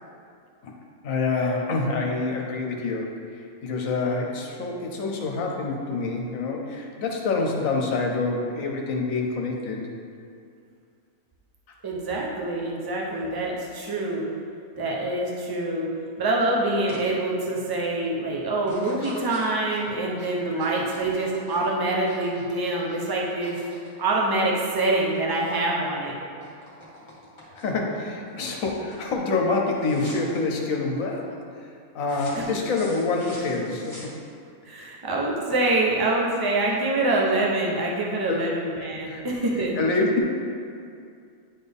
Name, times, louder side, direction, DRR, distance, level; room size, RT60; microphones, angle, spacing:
voice 1, 1.0-9.9 11.7-11.8 20.5-20.6 27.5-34.1 34.7-34.9 38.3-38.5 39.0-39.2 39.6-40.2, left 3 dB, 70° left, 0 dB, 1.2 m, -27 dB
voice 2, 11.8-14.2 14.8-15.9 16.2-23.6 24.0-26.2 32.3-32.4 34.6-39.8, right 2 dB, 25° right, -2 dB, 0.5 m, -25 dB
sound 1, 16.9-17.1 17.5-17.9 18.6-24.7 24.9-25.6 25.9-27.9 28.4-28.7 28.9-29.1 29.8-30.4 32.0-34.5, equal, 20° left, 1.4 m, -45 dB
9.6 x 4.2 x 3.5 m, 2.4 s
omnidirectional pair, 1.5 m